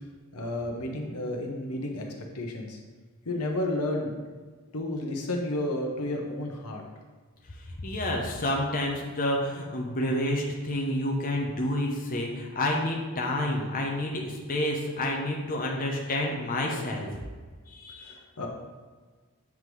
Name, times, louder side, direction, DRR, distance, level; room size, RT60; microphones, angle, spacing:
voice 1, 0.3-2.1 2.3-2.8 3.2-4.1 4.7-6.8 18.0-18.5, left 1 dB, 90° left, 1 dB, 1.0 m, -31 dB
voice 2, 7.8-17.1 17.7-18.2, left 1 dB, 40° left, 0 dB, 0.9 m, -29 dB
7.6 x 3.6 x 4.7 m, 1.4 s
head